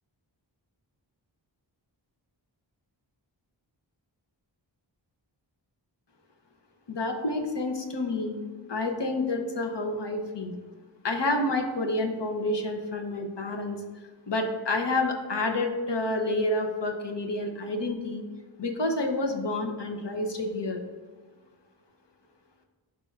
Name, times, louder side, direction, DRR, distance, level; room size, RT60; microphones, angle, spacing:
voice 1, 6.9-8.4 8.7-10.5 11.0-13.8 14.3-18.2 18.6-20.8, left 2 dB, 65° left, 4 dB, 0.9 m, -29 dB
11.5 x 4.4 x 2.4 m, 1.4 s
wide cardioid pair, 55°, 46 cm